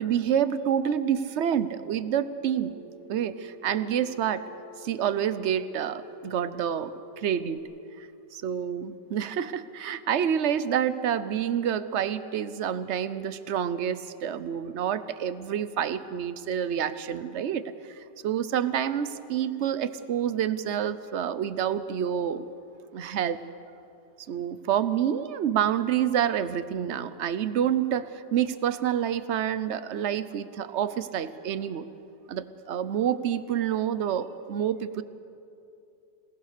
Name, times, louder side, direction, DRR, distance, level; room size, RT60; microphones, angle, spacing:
voice 1, 0.0-2.7 3.1-4.5 4.8-6.9 7.2-7.6 8.0-8.1 8.4-17.6 18.2-22.5 22.9-23.4 24.3-31.9 32.3-35.0, right 9 dB, 55° right, 13 dB, 0.8 m, -28 dB
Telephone, 2.6-7.6, equal, 70° right, 3.0 m, -48 dB
26.5 x 19.0 x 6.7 m, 2.6 s
omnidirectional pair, 1.9 m